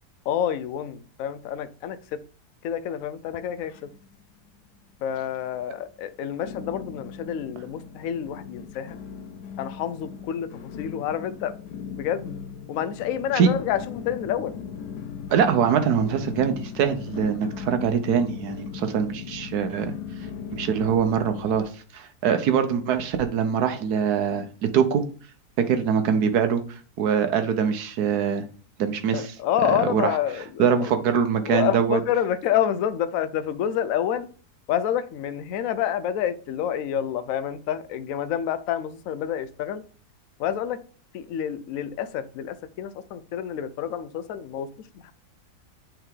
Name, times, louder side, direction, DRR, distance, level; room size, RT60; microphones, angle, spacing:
voice 1, 0.3-2.2 2.6-3.9 5.0-9.0 9.6-11.5 11.9-12.4 12.7-14.6 22.5-22.6 29.1-30.9 31.5-34.3 34.7-39.8 40.4-40.8 41.1-44.7 45.0-45.1, left 10 dB, 65° left, 0.9 m, -28 dB
sound 1, 3.3-4.2 4.5-5.1 5.6-5.7 6.4-21.6, left 7 dB, 90° left, 1.2 m, -38 dB
voice 2, 15.3-19.9 20.5-25.0 25.7-26.6 27.0-28.4 28.8-29.3 29.9-30.0 30.6-32.0, right 7 dB, 75° right, 1.3 m, -23 dB
8.8 x 3.4 x 3.6 m
omnidirectional pair, 1.7 m